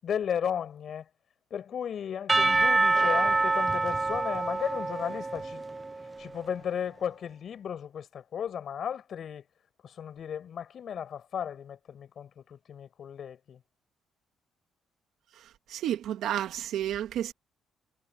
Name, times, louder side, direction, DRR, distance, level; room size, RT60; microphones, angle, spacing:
voice 1, 0.0-1.1 1.5-5.6 6.2-9.5 9.8-13.6, left 8 dB, 60° left, 7.4 m, -35 dB
Percussion / Church bell, 2.3-6.2, right 3 dB, 20° right, 0.4 m, -26 dB
voice 2, 15.7-17.3, right 11 dB, 80° right, 2.4 m, -31 dB
cardioid pair, 90°, 0 cm